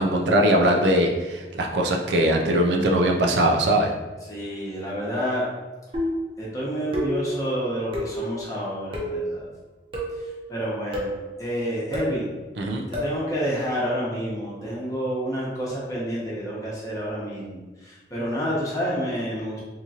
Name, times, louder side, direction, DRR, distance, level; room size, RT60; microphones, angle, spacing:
voice 1, 0.0-3.9 12.6-12.9, right 1 dB, 75° right, 2 dB, 0.5 m, -21 dB
voice 2, 4.3-5.4 6.4-9.4 10.5-11.1 11.4-12.3 12.9-19.6, equal, 20° left, -6 dB, 0.9 m, -29 dB
sound 1, 5.9-6.3 6.9-7.3 7.9-8.2 8.9-9.2 9.9-10.3 10.9-11.2 11.9-12.2 12.9-13.2, equal, 30° right, 0.7 m, -29 dB
3.6 x 2.9 x 2.8 m, 1.2 s
head